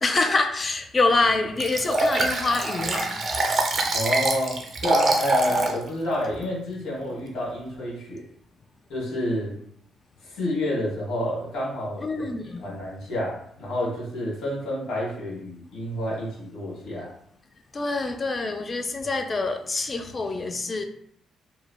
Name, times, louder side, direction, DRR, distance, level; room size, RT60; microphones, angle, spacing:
voice 1, 0.0-3.2 12.0-12.7 17.7-20.8, left 3 dB, 35° left, 6 dB, 0.3 m, -25 dB
Liquid, 1.6-5.8 6.2-6.3, right 2 dB, 45° right, 0.4 m, -24 dB
voice 2, 3.9-8.2 8.9-9.5 10.2-12.3 12.6-17.1, left 1 dB, 80° left, -5 dB, 1.3 m, -29 dB
3.1 x 2.1 x 2.2 m, 0.67 s
cardioid pair, 90°, 0 cm